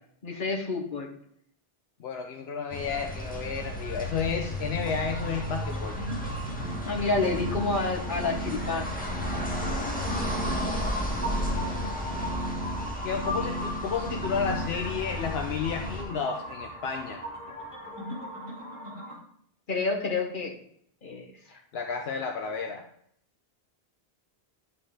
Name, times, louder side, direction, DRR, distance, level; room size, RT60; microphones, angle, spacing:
voice 1, 0.2-1.1 6.8-9.0 19.7-20.5 21.0-21.3, left 3 dB, 55° left, 0 dB, 1.5 m, -29 dB
voice 2, 2.0-6.0 9.3-9.7 13.0-17.2 21.7-22.9, left 6 dB, 80° left, 4 dB, 0.9 m, -32 dB
sound 1, 2.7-16.0, left 1 dB, 10° left, 1.5 m, -34 dB
sound 2, 4.8-19.1, equal, 30° right, 3.1 m, -38 dB
sound 3, 6.6-14.7, right 1 dB, 65° right, 1.0 m, -37 dB
11.5 x 3.9 x 3.9 m, 0.68 s
omnidirectional pair, 1.0 m